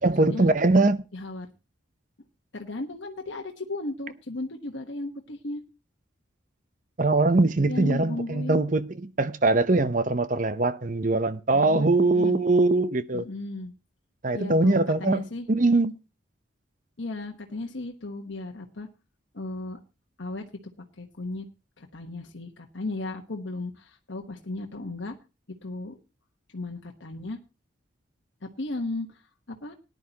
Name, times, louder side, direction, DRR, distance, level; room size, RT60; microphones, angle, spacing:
voice 1, 0.0-1.0 7.0-13.3 14.2-15.2 15.5-15.9, right 2 dB, 40° right, 0.7 m, -22 dB
voice 2, 1.1-1.5 2.5-5.6 7.7-8.6 11.5-12.4 13.1-13.7 14.3-15.5 17.0-18.9 19.3-19.8 20.2-20.5 21.0-21.5 21.8-25.2 25.6-26.0 26.5-27.4 28.4-29.2 29.5-29.7, left 2 dB, 70° left, 1.2 m, -35 dB
18.5 x 10.5 x 2.9 m
head